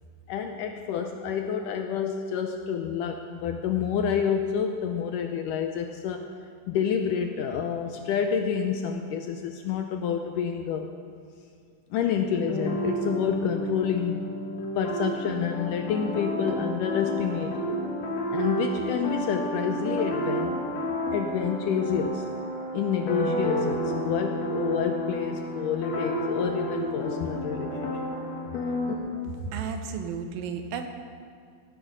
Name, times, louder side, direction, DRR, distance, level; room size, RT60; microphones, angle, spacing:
voice 1, 0.3-6.3 6.7-10.9 11.9-14.3 14.8-17.9 18.3-20.6 21.1-22.3 22.7-27.9, left 7 dB, 80° left, 5 dB, 2.0 m, -28 dB
sound 1, 12.3-29.0, equal, 55° left, 2.4 m, -31 dB
voice 2, 29.4-30.9, right 6 dB, 75° right, 6 dB, 2.5 m, -33 dB
17.0 x 9.9 x 5.2 m, 2.2 s
omnidirectional pair, 4.3 m